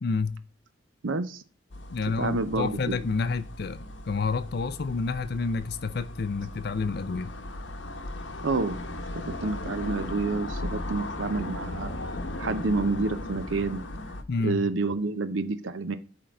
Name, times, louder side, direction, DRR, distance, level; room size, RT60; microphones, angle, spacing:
voice 1, 0.0-0.4 1.9-7.3 14.3-14.6, left 4 dB, 55° left, 0.5 m, -29 dB
voice 2, 1.0-1.4 2.2-3.0 8.4-8.8 9.2-11.9 12.4-13.8 14.4-16.0, right 3 dB, 90° right, 0.7 m, -28 dB
sound 1, 1.7-14.2, left 1 dB, 75° left, 1.0 m, -37 dB
8.8 x 3.8 x 4.3 m
head